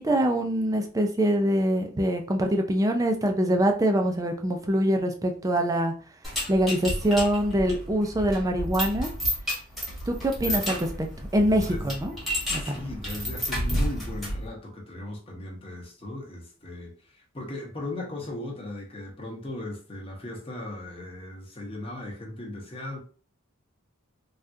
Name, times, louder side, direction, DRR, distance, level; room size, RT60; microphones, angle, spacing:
voice 1, 0.0-5.9 6.5-9.1 10.1-10.8 11.3-12.1 12.5-12.8, right 1 dB, 15° right, 0.4 m, -24 dB
sound 1, 6.2-14.5, equal, ahead, 1.0 m, -31 dB
voice 2, 11.6-11.9 12.5-23.0, left 1 dB, 25° left, 0.8 m, -37 dB
3.5 x 2.3 x 2.6 m
head